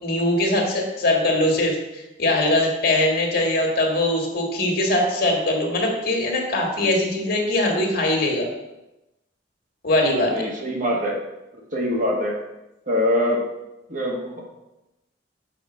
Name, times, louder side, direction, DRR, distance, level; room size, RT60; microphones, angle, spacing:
voice 1, 0.0-8.5 9.8-10.4, left 1 dB, 55° left, 1 dB, 1.8 m, -21 dB
voice 2, 10.3-11.2 11.7-12.4 12.9-13.5 13.9-14.4, left 1 dB, 45° right, -1 dB, 1.5 m, -23 dB
6.6 x 5.1 x 6.2 m, 0.96 s
head